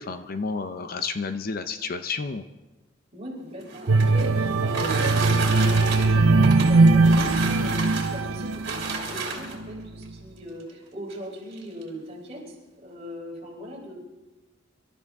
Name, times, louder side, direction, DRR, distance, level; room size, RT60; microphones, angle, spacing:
voice 1, 0.0-2.4, left 4 dB, 45° left, 9 dB, 0.6 m, -31 dB
voice 2, 3.1-14.0, left 1 dB, 30° right, -3 dB, 4.1 m, -38 dB
sound 1, 3.5-9.7 10.6-10.7 11.1-11.2 11.5-11.9, right 4 dB, 55° right, 2.9 m, -32 dB
sound 2, 3.9-9.1 9.6-9.8, right 3 dB, 85° right, 0.7 m, -20 dB
25.0 x 13.0 x 3.6 m, 1.1 s
head